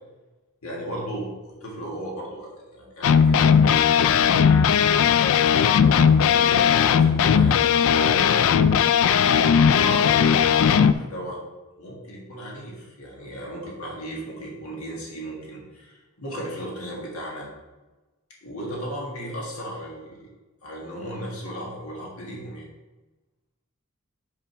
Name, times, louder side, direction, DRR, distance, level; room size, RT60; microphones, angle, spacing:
voice 1, 0.6-3.8 4.6-8.6 9.3-11.4 11.8-17.5 18.4-20.3 20.6-22.7, right 1 dB, 85° left, -3 dB, 1.6 m, -36 dB
sound 1, 3.0-10.9, left 7 dB, 65° left, 0.3 m, -18 dB
5.8 x 5.0 x 4.6 m, 1.1 s
head